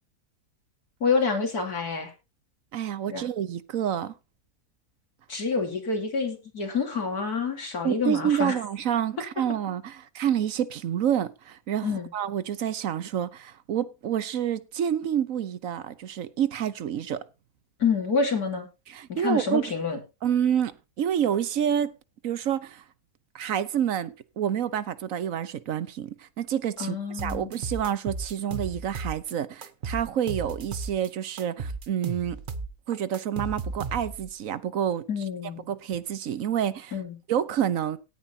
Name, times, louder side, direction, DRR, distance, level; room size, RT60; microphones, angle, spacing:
voice 1, 1.0-2.1 3.1-3.3 5.3-8.6 11.8-12.1 17.8-18.7 19.1-20.0 26.8-27.5 35.1-35.6 36.9-37.2, left 5 dB, 90° left, 3.5 m, -27 dB
voice 2, 2.7-4.1 7.8-17.2 18.9-19.7 20.2-21.9 22.2-22.8 23.3-32.4 32.9-35.1 35.7-37.0 37.3-38.0, right 9 dB, 65° right, 1.2 m, -28 dB
sound 1, 27.2-29.3 29.6-31.1 31.4-34.3, right 4 dB, 40° right, 1.0 m, -35 dB
17.5 x 9.3 x 2.8 m
omnidirectional pair, 1.6 m